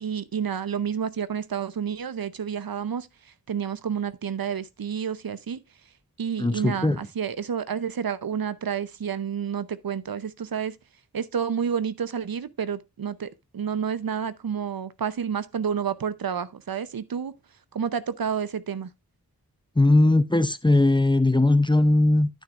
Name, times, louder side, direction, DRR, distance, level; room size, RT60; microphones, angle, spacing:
voice 1, 0.0-5.6 6.2-10.8 11.1-17.3 17.7-18.9, right 7 dB, 70° right, 0.7 m, -30 dB
voice 2, 6.4-7.0 19.8-22.3, left 2 dB, 15° left, 0.6 m, -19 dB
10.0 x 9.1 x 2.5 m
wide cardioid pair, 65°, 37 cm